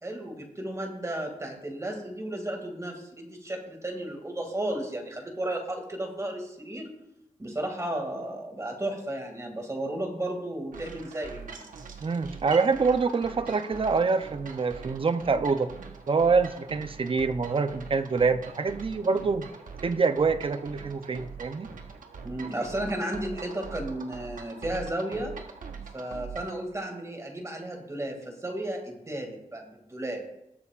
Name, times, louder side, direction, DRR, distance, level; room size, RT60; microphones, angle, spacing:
voice 1, 0.0-6.9 7.4-11.6 22.2-25.3 25.9-30.2, right 1 dB, 20° right, 2 dB, 2.3 m, -34 dB
sound 1, 10.7-26.6, right 5 dB, 85° right, 1.1 m, -43 dB
voice 2, 12.0-15.7 16.1-19.5 19.8-21.7, right 4 dB, 40° right, 10 dB, 0.7 m, -25 dB
20.0 x 6.9 x 2.5 m, 0.85 s
wide cardioid pair, 90°, 13 cm